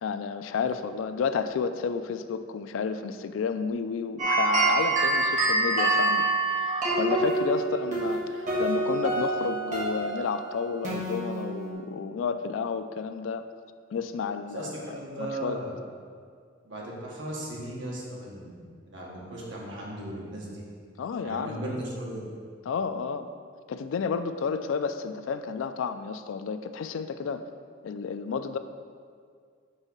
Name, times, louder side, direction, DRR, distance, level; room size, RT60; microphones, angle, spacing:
voice 1, 0.0-6.3 6.6-13.5 13.9-14.7 15.2-15.6 21.0-21.8 22.7-23.3 23.7-27.4 27.8-28.6, left 5 dB, 85° left, 10 dB, 0.3 m, -31 dB
sound 1, 4.2-11.7, right 2 dB, 40° right, 1.5 m, -26 dB
voice 2, 14.5-15.7 16.6-20.6 21.2-22.2, right 1 dB, 70° right, -4 dB, 1.3 m, -37 dB
5.5 x 3.5 x 5.4 m, 2.1 s
head